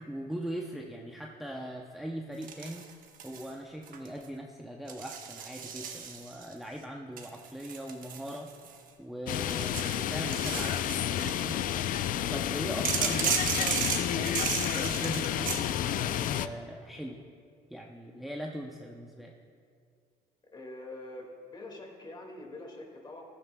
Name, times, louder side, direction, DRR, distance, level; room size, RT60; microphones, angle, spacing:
voice 1, 0.0-2.9 3.2-8.5 9.0-11.6 12.0-17.2 17.7-19.3, right 1 dB, ahead, 0 dB, 0.6 m, -40 dB
sound 1, 2.4-3.5 3.8-4.2 4.9-6.5 7.2-8.9 9.4-11.5 12.8-15.7, right 6 dB, 55° right, 1.1 m, -34 dB
sound 2, 9.3-16.5, left 11 dB, 55° left, 0.4 m, -30 dB
voice 2, 20.5-23.2, left 2 dB, 25° left, 1 dB, 2.0 m, -44 dB
15.5 x 12.0 x 2.3 m, 2.2 s
cardioid pair, 110°, 17 cm